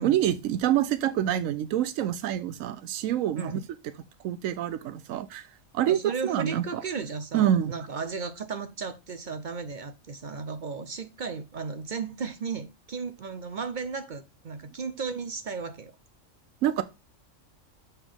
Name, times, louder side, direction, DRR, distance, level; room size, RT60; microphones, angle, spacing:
voice 1, 0.0-3.6 4.2-5.5 5.7-6.8 7.3-7.7 16.6-16.8, right 11 dB, 90° right, 1.0 m, -26 dB
voice 2, 3.3-3.7 5.9-15.9, right 5 dB, 50° right, 0.6 m, -35 dB
6.8 x 5.7 x 3.5 m
omnidirectional pair, 1.3 m